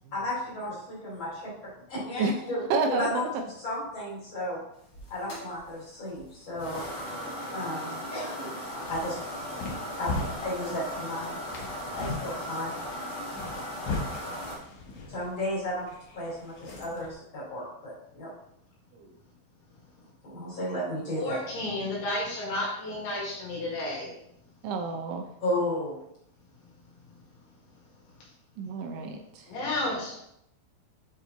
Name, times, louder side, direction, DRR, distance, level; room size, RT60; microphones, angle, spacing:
voice 1, 0.1-1.5 1.9-2.6 2.9-4.6 5.1-6.8 7.5-8.5 8.9-9.2 10.0-10.1 10.4-11.4 11.9-12.7 15.1-15.9 16.1-18.3 20.2-21.4 25.4-26.0, left 1 dB, 30° left, -7 dB, 3.0 m, -33 dB
voice 2, 2.7-3.3 19.0-19.1 24.6-25.3 28.6-29.5, right 4 dB, 80° right, 4 dB, 2.9 m, -29 dB
sound 1, 4.9-14.6, equal, 50° left, 1.6 m, -37 dB
sound 2, 8.6-17.1, left 3 dB, 90° left, 1.7 m, -39 dB
voice 3, 21.2-24.1 29.5-30.2, left 2 dB, 70° left, -4 dB, 4.4 m, -32 dB
9.6 x 4.5 x 4.0 m, 0.77 s
omnidirectional pair, 5.7 m